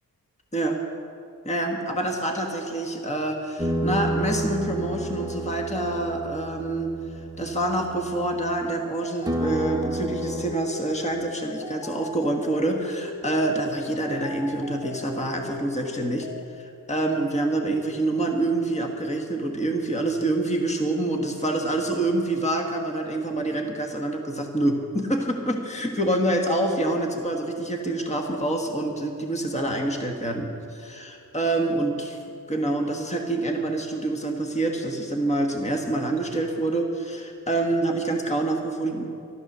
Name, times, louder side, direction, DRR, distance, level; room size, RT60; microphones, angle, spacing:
voice 1, 1.4-16.3 16.6-32.2 32.5-39.1, right 2 dB, 20° left, 2 dB, 1.4 m, -26 dB
sound 1, 3.6-8.8 9.3-10.6, right 2 dB, 10° right, 1.0 m, -30 dB
sound 2, 9.0-16.4, left 5 dB, 70° left, 0.9 m, -39 dB
13.5 x 12.5 x 6.7 m, 2.5 s
wide cardioid pair, 110°, 35 cm